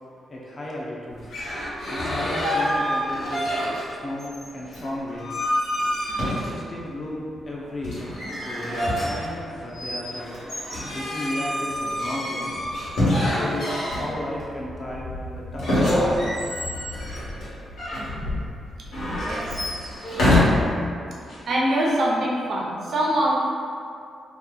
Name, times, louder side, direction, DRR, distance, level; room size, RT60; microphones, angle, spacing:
voice 1, 0.3-1.3 1.9-3.6 4.0-5.4 6.2-10.3 10.9-12.5 13.2-16.4, left 1 dB, 30° left, -4 dB, 0.4 m, -34 dB
sound 1, 1.2-3.9 4.2-6.8 7.8-14.4 15.6-18.1 18.9-20.4, left 1 dB, 80° left, 1.3 m, -26 dB
sound 2, 7.3-8.3 9.1-9.6 10.9-11.1 11.4-20.3 21.2-21.4, left 1 dB, 60° left, 1.1 m, -39 dB
voice 2, 21.5-23.4, right 1 dB, 50° right, -4 dB, 0.6 m, -23 dB
2.9 x 2.2 x 3.8 m, 2.4 s
wide cardioid pair, 170°, 0 cm